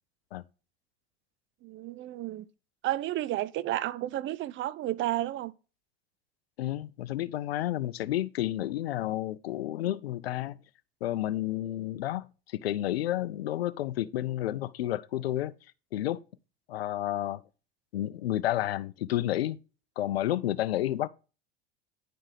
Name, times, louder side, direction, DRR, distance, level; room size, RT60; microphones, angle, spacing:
voice 1, 1.6-2.5 2.8-5.5, right 14 dB, 40° right, 0.5 m, -32 dB
voice 2, 6.6-10.6 11.0-15.5 15.9-16.2 16.7-17.4 17.9-19.6 20.0-21.1, left 14 dB, 85° left, 0.5 m, -31 dB
10.0 x 5.4 x 3.3 m
hypercardioid pair, 80°, 30 cm